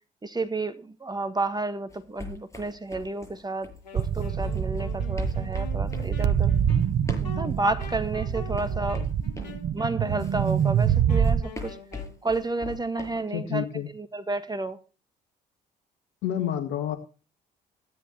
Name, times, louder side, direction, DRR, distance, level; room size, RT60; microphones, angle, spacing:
voice 1, 0.2-6.5 7.2-11.8 12.2-13.7 13.9-14.8, right 2 dB, 20° right, 1.6 m, -31 dB
sound 1, 1.9-9.6 10.2-13.2, left 3 dB, 15° left, 7.5 m, -42 dB
Wind instrument woodwind instrument, 3.8-12.2, left 7 dB, 80° left, 2.7 m, -45 dB
sound 2, 4.0-11.4, right 8 dB, 50° right, 0.8 m, -26 dB
voice 2, 13.1-13.9 16.2-17.0, left 10 dB, 65° left, 1.7 m, -29 dB
15.5 x 10.5 x 3.1 m
figure-of-eight pair, 45°, 21 cm